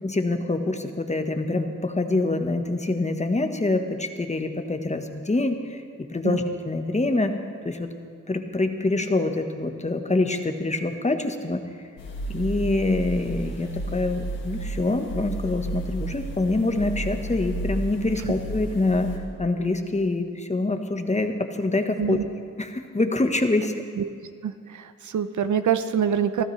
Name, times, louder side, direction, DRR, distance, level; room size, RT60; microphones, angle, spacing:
voice 1, 0.0-7.4 7.6-7.9 8.3-11.6 12.3-22.2 22.6-23.7, left 2 dB, 20° left, 6 dB, 1.3 m, -25 dB
sound 1, 12.0-19.2, right 2 dB, 80° left, 2.2 m, -32 dB
voice 2, 24.4-26.4, right 8 dB, 60° right, 10 dB, 0.8 m, -25 dB
23.5 x 14.0 x 3.3 m, 2.2 s
cardioid pair, 60°, 33 cm